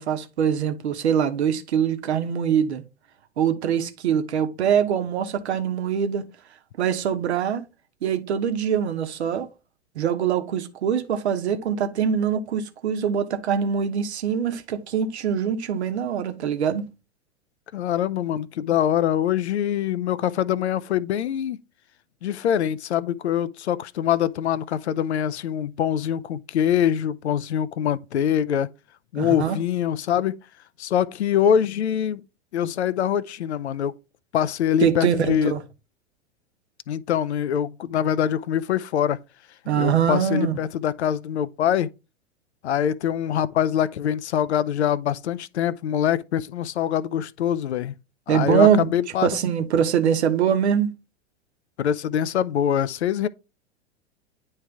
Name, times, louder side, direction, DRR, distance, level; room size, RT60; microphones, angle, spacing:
voice 1, 0.0-2.8 3.4-6.2 6.8-7.6 8.0-9.5 9.9-16.9 29.2-29.6 34.8-35.6 39.7-40.6 48.3-48.9 49.2-50.9, right 8 dB, 70° right, 1.1 m, -23 dB
voice 2, 17.7-21.6 22.2-28.7 29.1-30.4 30.8-32.2 32.5-33.9 34.3-35.5 36.9-39.2 39.8-41.9 42.6-47.9 48.3-49.4 51.8-53.3, left 9 dB, 75° left, 0.5 m, -24 dB
9.7 x 3.3 x 3.4 m
figure-of-eight pair, 95°, 34 cm